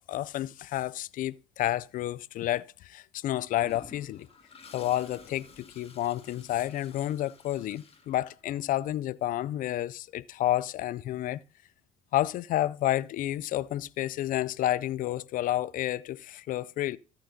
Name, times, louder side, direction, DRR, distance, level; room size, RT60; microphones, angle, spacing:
voice 1, 0.0-4.3 4.7-11.4 12.1-17.0, left 13 dB, 55° left, 0.4 m, -30 dB
Toilet flush, 3.6-8.7, left 4 dB, 35° left, 1.9 m, -53 dB
13.5 x 8.9 x 2.7 m
hypercardioid pair, 65°, 17 cm